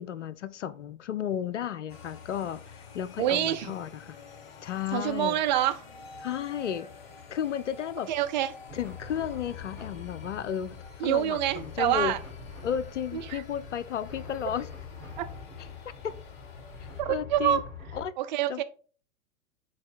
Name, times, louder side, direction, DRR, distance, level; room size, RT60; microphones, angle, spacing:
voice 1, 0.0-4.2 4.6-5.4 6.2-6.9 7.3-8.1 8.7-12.1 12.6-14.7 16.0-16.2 17.1-17.6 17.9-18.1 18.5-18.6, left 9 dB, 60° left, 0.6 m, -33 dB
sound 1, 1.9-17.0, left 5 dB, 45° left, 1.2 m, -49 dB
voice 2, 3.2-3.7 4.9-5.9 8.1-8.5 11.0-12.2 13.1-13.4 15.2-15.3 17.0-17.6 18.2-18.6, right 12 dB, 35° right, 0.6 m, -26 dB
sound 2, 8.7-18.0, left 5 dB, 5° left, 3.7 m, -44 dB
6.4 x 4.6 x 4.2 m
figure-of-eight pair, 100°, 40 cm